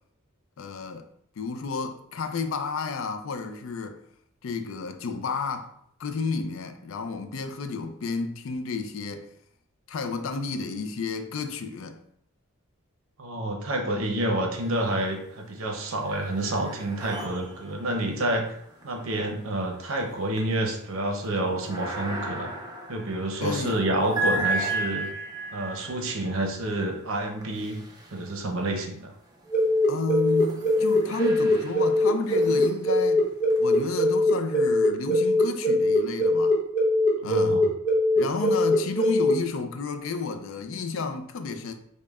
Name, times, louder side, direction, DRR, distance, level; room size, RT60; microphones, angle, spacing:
voice 1, 0.6-1.1 1.4-4.0 4.4-5.7 6.0-9.3 9.9-12.0 23.4-23.8 29.9-33.2 33.6-36.6 37.2-37.6 38.1-41.7, left 4 dB, 65° left, 0.4 m, -31 dB
voice 2, 13.2-18.6 18.8-22.5 22.9-25.1 25.5-27.8 28.1-29.1 37.2-37.7, right 1 dB, 75° right, 0.7 m, -28 dB
sound 1, 14.5-15.2 15.6-28.7 29.4-33.9, right 2 dB, 20° right, 0.5 m, -36 dB
sound 2, 29.5-39.3, left 1 dB, 40° left, 0.9 m, -21 dB
5.2 x 2.1 x 2.3 m
head